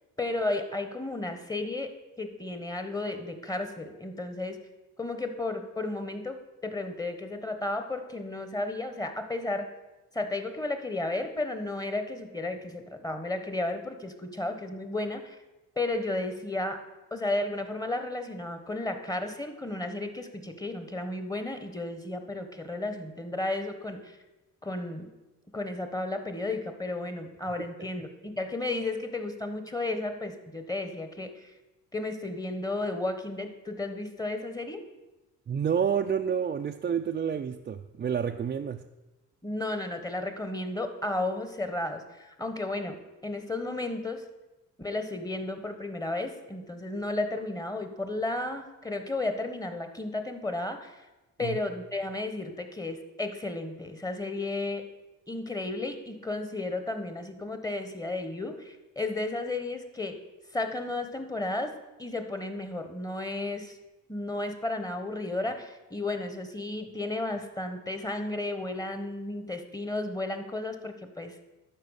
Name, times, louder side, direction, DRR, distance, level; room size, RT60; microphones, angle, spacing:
voice 1, 0.2-1.9 2.2-4.6 5.0-9.7 10.1-15.4 15.8-16.8 17.1-24.2 24.6-25.1 25.5-31.5 31.9-34.8 39.4-44.2 44.8-51.0 51.4-54.8 55.3-60.2 60.5-61.7 62.0-63.8 64.1-71.4, left 2 dB, 10° left, 7 dB, 1.1 m, -33 dB
voice 2, 35.5-38.8 51.4-51.6, right 7 dB, 30° right, 4 dB, 0.5 m, -29 dB
12.5 x 4.8 x 6.4 m, 1.1 s
cardioid pair, 90°, 30 cm